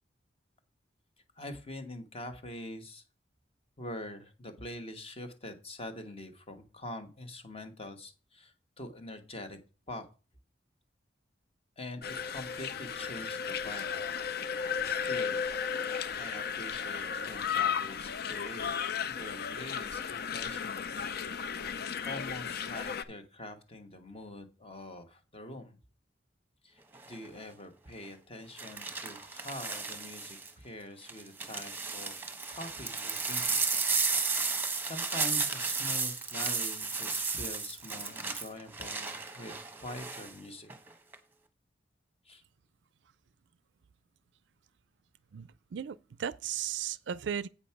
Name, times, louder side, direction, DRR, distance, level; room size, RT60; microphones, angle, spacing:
voice 1, 1.4-3.0 3.8-9.6 9.9-10.0 11.8-14.0 14.8-15.4 16.2-18.7 19.1-21.0 22.0-25.8 26.6-33.6 34.8-40.7 42.3-42.4, left 1 dB, 35° left, 1.3 m, -44 dB
sound 1, 12.0-23.0, left 7 dB, 60° left, 0.5 m, -34 dB
sound 2, 26.9-27.3 28.6-30.5 31.1-40.3 40.7-41.2, right 4 dB, 10° right, 1.0 m, -33 dB
voice 2, 45.3-47.5, right 9 dB, 70° right, 0.4 m, -36 dB
8.4 x 5.1 x 5.8 m
head